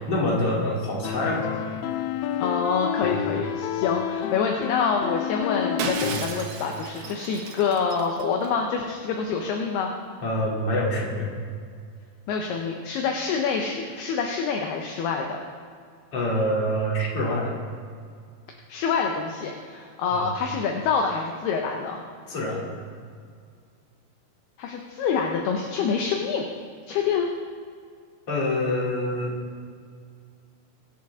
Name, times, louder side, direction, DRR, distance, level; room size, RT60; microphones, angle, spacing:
voice 1, 0.1-1.5 3.0-3.2 6.0-6.2 10.2-11.3 16.1-17.6 20.1-20.3 22.3-22.7 28.3-29.3, left 1 dB, 35° left, -5 dB, 3.8 m, -26 dB
sound 1, 1.0-6.2, left 10 dB, 85° left, 2.2 m, -29 dB
voice 2, 2.4-9.9 12.3-15.4 18.7-22.0 24.6-26.4 26.9-27.3, left 5 dB, 70° left, 1 dB, 2.8 m, -26 dB
Shatter, 5.8-8.5, right 6 dB, 70° right, 2.0 m, -34 dB
24.5 x 10.5 x 3.8 m, 2.2 s
omnidirectional pair, 5.4 m